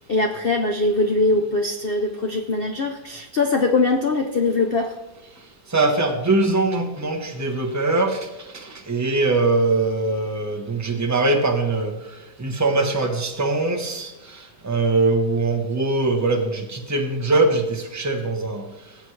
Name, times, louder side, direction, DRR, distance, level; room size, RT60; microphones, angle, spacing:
voice 1, 0.1-5.0, left 3 dB, 70° left, 4 dB, 0.5 m, -22 dB
voice 2, 5.7-8.3 8.5-11.9 12.4-18.6, right 3 dB, 20° right, 4 dB, 0.4 m, -22 dB
17.5 x 7.7 x 3.2 m, 1.0 s
omnidirectional pair, 2.0 m